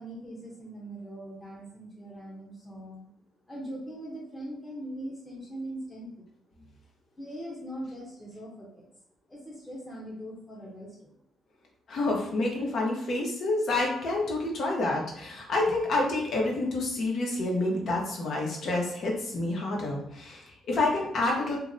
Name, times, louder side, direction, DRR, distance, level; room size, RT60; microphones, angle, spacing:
voice 1, 0.0-3.1 3.5-6.3 7.1-8.9 9.3-11.2, right 1 dB, 15° left, -6 dB, 0.9 m, -41 dB
voice 2, 11.9-21.6, left 2 dB, 60° left, -1 dB, 0.9 m, -28 dB
2.8 x 2.1 x 3.8 m, 0.72 s
cardioid pair, 90°, 0 cm